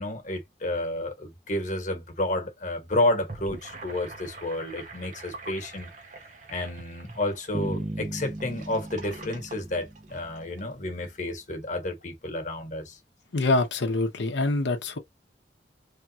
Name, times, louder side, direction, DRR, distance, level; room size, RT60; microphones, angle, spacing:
voice 1, 0.0-5.9 6.5-13.0, left 1 dB, 45° left, 1.2 m, -30 dB
Gurgling / Sink (filling or washing), 3.1-10.6, right 2 dB, 45° right, 1.0 m, -45 dB
Bass guitar, 7.5-10.6, right 1 dB, 20° right, 0.4 m, -36 dB
voice 2, 13.3-15.0, left 2 dB, 85° left, 0.7 m, -25 dB
3.3 x 2.3 x 2.8 m
head